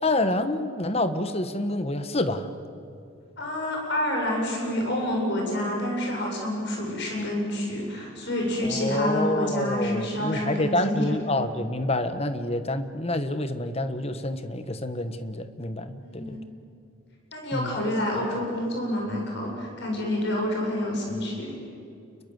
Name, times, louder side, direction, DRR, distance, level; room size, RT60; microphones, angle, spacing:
voice 1, 0.0-2.5 8.6-16.4 17.5-17.8, left 1 dB, 30° left, 10 dB, 1.3 m, -28 dB
voice 2, 3.4-11.2 16.0-16.4 17.3-21.5, left 1 dB, 55° left, 0 dB, 7.7 m, -28 dB
29.0 x 22.0 x 7.9 m, 2.5 s
head